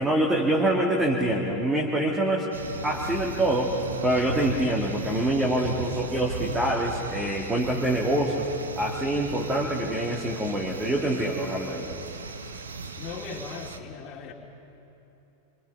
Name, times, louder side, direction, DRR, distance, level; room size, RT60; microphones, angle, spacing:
voice 1, 0.0-2.5 2.8-3.7 4.0-8.5 8.8-12.0, right 1 dB, 10° right, -2 dB, 2.4 m, -25 dB
sound 1, 2.5-13.8, right 4 dB, 70° right, 1.5 m, -37 dB
voice 2, 13.0-14.3, left 6 dB, 35° left, 0 dB, 2.9 m, -38 dB
28.0 x 24.5 x 5.6 m, 3.0 s
figure-of-eight pair, 90°, 0 cm